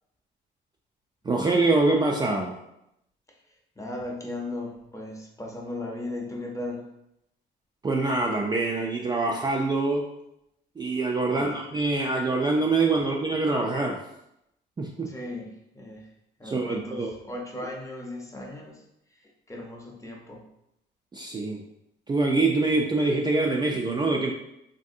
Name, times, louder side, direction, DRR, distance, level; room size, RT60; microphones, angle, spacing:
voice 1, 1.2-2.5 7.8-10.0 10.8-14.0 14.8-15.1 16.4-17.1 21.1-21.6 22.1-24.3, right 3 dB, 20° right, -1 dB, 0.3 m, -25 dB
voice 2, 3.8-6.9 11.3-11.5 15.0-16.1 16.4-18.8 19.1-20.4, left 2 dB, 15° left, 0 dB, 0.6 m, -37 dB
3.1 x 2.6 x 2.5 m, 0.83 s
cardioid pair, 90°, 20 cm